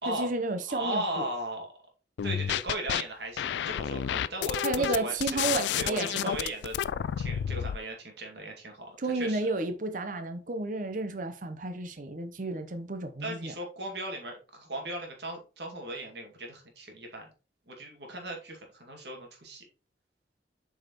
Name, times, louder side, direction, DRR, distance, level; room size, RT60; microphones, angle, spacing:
voice 1, 0.1-1.2 4.6-6.4 9.0-13.5, right 2 dB, 50° right, 0.8 m, -32 dB
voice 2, 0.7-1.7 2.2-6.8 7.2-9.5 13.2-17.3 17.7-19.7, right 1 dB, 75° right, 2.1 m, -37 dB
sound 1, 2.2-3.0 3.4-7.8, left 9 dB, 80° left, 0.3 m, -30 dB
7.6 x 4.8 x 3.0 m
head